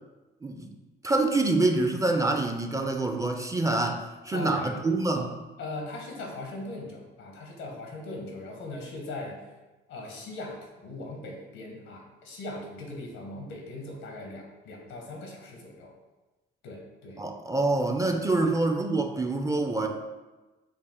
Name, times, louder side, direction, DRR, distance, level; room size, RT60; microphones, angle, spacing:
voice 1, 0.4-0.7 1.0-5.3 17.2-19.9, right 2 dB, 15° right, 4 dB, 0.4 m, -26 dB
voice 2, 4.3-4.8 5.6-9.4 9.9-15.9 16.6-17.2 18.1-18.5, left 2 dB, 85° left, 1 dB, 1.0 m, -40 dB
5.1 x 2.4 x 3.6 m, 1.1 s
cardioid pair, 90°, 20 cm